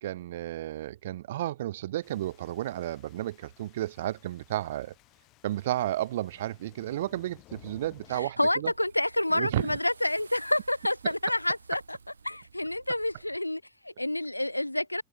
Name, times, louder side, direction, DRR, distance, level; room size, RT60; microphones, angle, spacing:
voice 1, 0.0-4.9 5.4-8.7 9.3-9.8 11.0-11.1, right 14 dB, 55° right, 0.4 m, -32 dB
sound 1, 2.0-8.2, left 19 dB, 40° left, 6.1 m, -57 dB
sound 2, 7.8-13.4, right 5 dB, 75° right, 3.3 m, -54 dB
voice 2, 8.1-12.0 12.2-15.0, left 1 dB, 85° left, 0.3 m, -29 dB
figure-of-eight pair, 90°, 0 cm